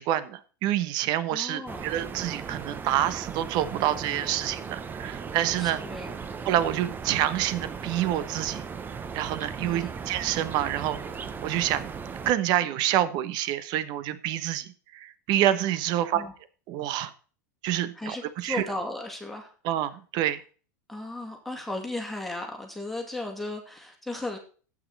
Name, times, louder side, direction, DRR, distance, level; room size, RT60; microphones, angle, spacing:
voice 1, 0.0-5.8 6.4-8.6 9.1-11.0 11.4-11.9 12.2-16.2 16.7-17.1 17.6-18.6 19.6-20.4, right 12 dB, 50° right, 14 dB, 1.1 m, -27 dB
voice 2, 1.3-1.9 5.6-6.2 9.6-9.9 16.0-16.3 17.9-19.5 20.9-24.4, left 2 dB, ahead, 1 dB, 2.4 m, -36 dB
sound 1, 1.7-12.3, right 6 dB, 20° right, 0.9 m, -37 dB
12.0 x 8.8 x 4.1 m, 0.39 s
supercardioid pair, 125°, 9 cm